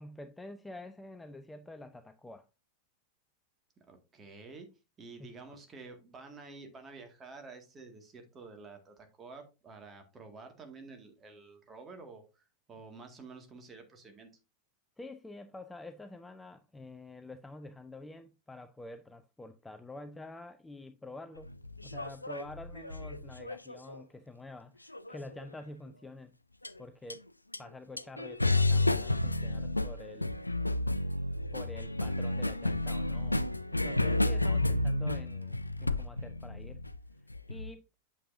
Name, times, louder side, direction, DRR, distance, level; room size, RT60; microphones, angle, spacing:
voice 1, 0.0-2.5 5.2-5.5 15.0-21.5 21.8-26.3 26.8-27.3 27.6-30.3 31.5-36.8 37.5-37.8, left 2 dB, 10° left, 0.5 m, -47 dB
voice 2, 3.9-4.7 5.0-12.4 12.7-14.3, right 4 dB, 20° right, 1.9 m, -50 dB
sound 1, 21.4-24.0 24.9-25.5 26.6-26.8 27.1-27.2 27.5-27.6 28.0-37.7, left 2 dB, 85° left, 0.4 m, -31 dB
8.4 x 6.9 x 2.6 m
figure-of-eight pair, 90°, 0 cm